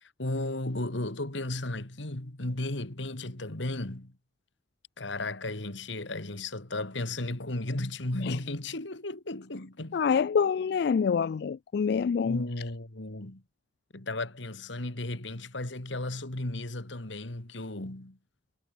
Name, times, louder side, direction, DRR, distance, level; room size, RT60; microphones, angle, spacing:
voice 1, 0.0-4.1 5.0-10.0 12.2-13.4 13.9-18.2, left 2 dB, 75° left, 2.3 m, -35 dB
voice 2, 9.9-12.4, left 6 dB, 55° left, 0.3 m, -26 dB
head